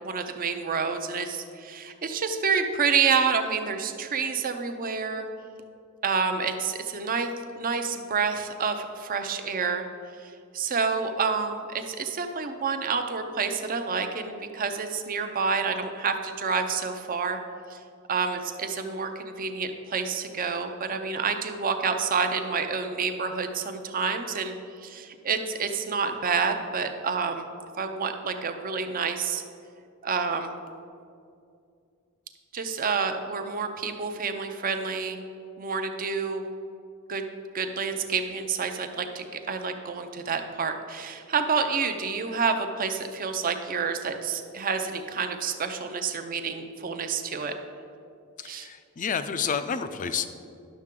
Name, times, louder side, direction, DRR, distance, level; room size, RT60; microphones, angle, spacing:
voice 1, 0.0-5.3 6.0-7.3 7.5-9.9 10.2-17.4 17.7-17.8 18.1-24.5 24.8-27.5 27.8-29.4 30.0-30.5 32.5-35.2 35.6-36.4 37.1-37.3 37.5-47.5 48.4-48.7, right 5 dB, 40° right, 7 dB, 0.6 m, -28 dB
voice 2, 48.4-50.3, left 6 dB, 35° left, 10 dB, 0.4 m, -30 dB
11.0 x 6.6 x 3.7 m, 2.4 s
head